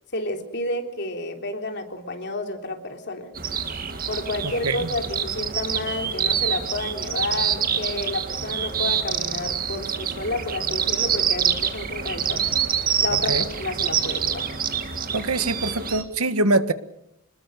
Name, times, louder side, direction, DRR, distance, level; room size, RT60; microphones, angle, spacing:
voice 1, 0.1-3.3 4.1-12.4 13.0-14.5, left 2 dB, 50° left, 4 dB, 3.4 m, -30 dB
sound 1, 3.3-16.0, right 8 dB, 40° right, 2.0 m, -26 dB
voice 2, 4.4-4.8 13.1-13.4 15.1-16.7, right 2 dB, 85° right, 11 dB, 1.5 m, -24 dB
26.5 x 21.0 x 6.8 m, 0.81 s
head